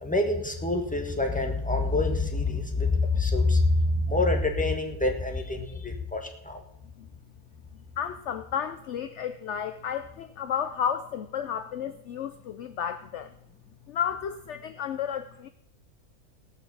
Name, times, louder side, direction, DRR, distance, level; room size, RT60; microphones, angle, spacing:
voice 1, 0.0-6.6, left 2 dB, 5° left, 2 dB, 1.5 m, -26 dB
voice 2, 8.0-13.3 13.9-15.5, left 8 dB, 60° left, 11 dB, 0.8 m, -32 dB
18.0 x 6.0 x 7.0 m, 0.78 s
omnidirectional pair, 1.6 m